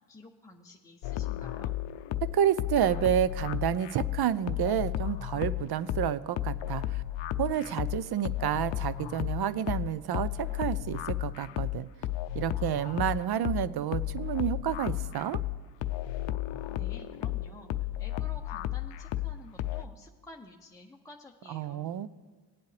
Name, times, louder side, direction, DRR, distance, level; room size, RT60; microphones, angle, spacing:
voice 1, 0.1-1.8 16.7-21.9, left 2 dB, 5° left, 0 dB, 0.7 m, -51 dB
sound 1, 1.0-19.8, left 14 dB, 65° left, 0.6 m, -33 dB
voice 2, 2.3-7.0 7.4-11.9 12.3-15.4 21.5-22.1, right 10 dB, 55° right, 16 dB, 0.6 m, -30 dB
18.5 x 8.1 x 3.3 m, 1.4 s
cardioid pair, 70°, 47 cm